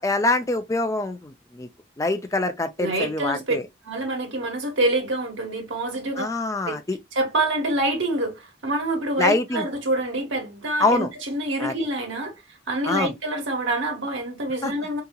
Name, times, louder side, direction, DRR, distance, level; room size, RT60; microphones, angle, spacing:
voice 1, 0.0-1.7 2.0-3.6 6.2-7.0 9.2-9.6 10.8-11.1 11.6-11.7 12.9-13.1 14.6-14.7, left 2 dB, 15° left, 0.3 m, -24 dB
voice 2, 2.8-3.6 3.8-6.2 6.7-6.8 7.1-12.3 12.7-15.0, right 1 dB, 80° right, 1.3 m, -26 dB
3.7 x 2.9 x 2.2 m
head